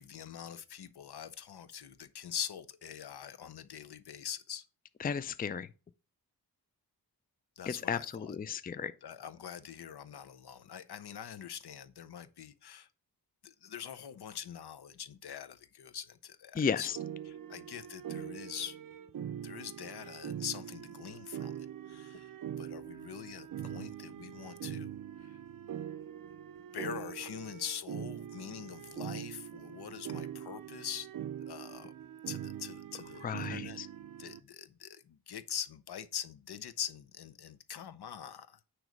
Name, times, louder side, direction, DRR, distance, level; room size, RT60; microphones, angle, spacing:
voice 1, 0.0-4.6 7.6-8.4 9.0-12.9 13.4-18.8 19.4-22.3 22.6-25.4 26.7-31.1 31.4-31.9 32.3-33.8 34.2-38.6, left 9 dB, 75° left, 0.7 m, -44 dB
voice 2, 5.0-5.7 7.7-8.9 16.5-16.9 33.2-33.9, left 6 dB, 25° left, 0.4 m, -34 dB
sound 1, 17.0-34.4, right 10 dB, 55° right, 0.5 m, -43 dB
9.3 x 3.1 x 5.1 m
wide cardioid pair, 85°, 39 cm